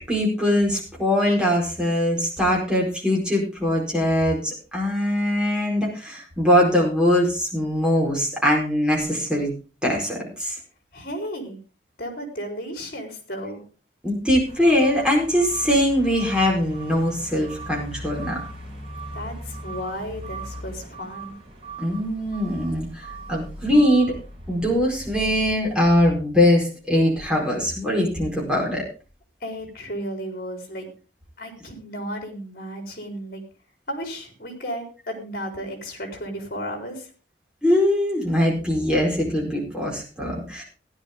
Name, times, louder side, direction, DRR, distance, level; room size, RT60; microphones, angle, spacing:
voice 1, 0.1-9.5 9.8-10.6 14.0-18.4 21.8-24.1 24.5-28.8 37.6-40.6, left 1 dB, 5° right, -3 dB, 4.7 m, -22 dB
voice 2, 10.9-11.6 12.0-13.6 19.1-21.3 29.4-30.9 31.4-33.4 33.9-37.1, equal, 50° left, 3 dB, 4.2 m, -34 dB
sound 1, 14.4-26.1, right 1 dB, 35° right, 4.4 m, -39 dB
16.0 x 10.5 x 3.7 m, 0.35 s
head